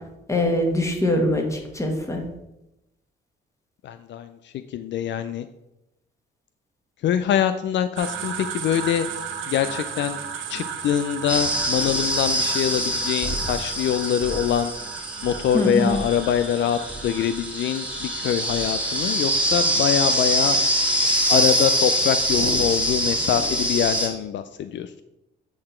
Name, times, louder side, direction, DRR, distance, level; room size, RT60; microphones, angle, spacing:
voice 1, 0.3-2.2 15.5-16.0, left 1 dB, 15° left, 2 dB, 1.7 m, -23 dB
voice 2, 3.8-5.5 7.0-9.1 9.5-10.2 10.5-14.7 15.2-20.6 21.3-24.9, left 10 dB, 65° left, 11 dB, 0.4 m, -24 dB
sound 1, 8.0-19.2, right 8 dB, 80° right, 0.8 m, -35 dB
sound 2, 11.3-24.1, equal, 5° right, 1.7 m, -24 dB
8.6 x 4.0 x 4.3 m, 0.91 s
cardioid pair, 90°, 20 cm